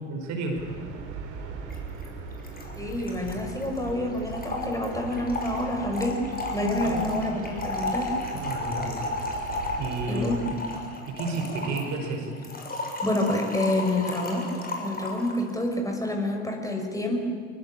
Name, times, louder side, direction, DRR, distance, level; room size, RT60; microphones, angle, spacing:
voice 1, 0.1-0.6 6.8-7.1 7.9-8.0 8.3-9.0 9.8-10.6 11.1-12.3, right 3 dB, 50° right, 3 dB, 5.4 m, -31 dB
sound 1, 0.5-10.5, right 5 dB, 70° right, 4.3 m, -39 dB
Trickle dribble / Fill (with liquid), 1.7-1.8 2.0-2.1 2.3-15.4, left 2 dB, 25° left, 6.7 m, -34 dB
voice 2, 2.8-6.2 6.5-8.1 10.1-10.7 13.0-14.4 14.8-17.2, left 1 dB, 10° left, 2 dB, 5.9 m, -28 dB
24.0 x 24.0 x 8.8 m, 2.2 s
figure-of-eight pair, 65°, 36 cm